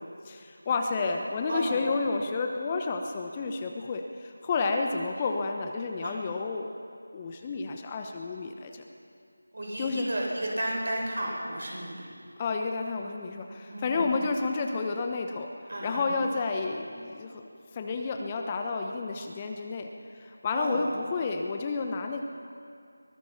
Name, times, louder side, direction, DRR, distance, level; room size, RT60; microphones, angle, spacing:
voice 1, 0.0-6.7 7.1-8.8 9.8-10.1 12.4-15.5 15.8-19.9 20.2-22.2, left 4 dB, 20° left, 4 dB, 1.1 m, -31 dB
voice 2, 9.5-11.9 13.7-14.1 15.7-16.1 20.5-20.9, right 1 dB, 60° right, -1 dB, 7.3 m, -33 dB
23.5 x 20.0 x 5.9 m, 2.3 s
figure-of-eight pair, 165°, 0 cm